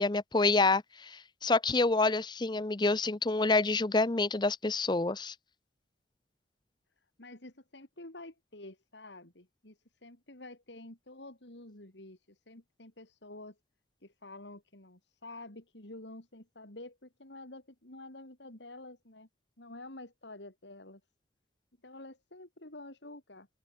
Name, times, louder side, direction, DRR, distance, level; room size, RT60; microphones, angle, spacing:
voice 1, 0.0-5.3, left 3 dB, 25° left, 0.6 m, -27 dB
voice 2, 7.2-13.6 14.0-19.3 19.6-21.0 21.8-23.5, left 2 dB, 65° left, 3.4 m, -49 dB
open air
head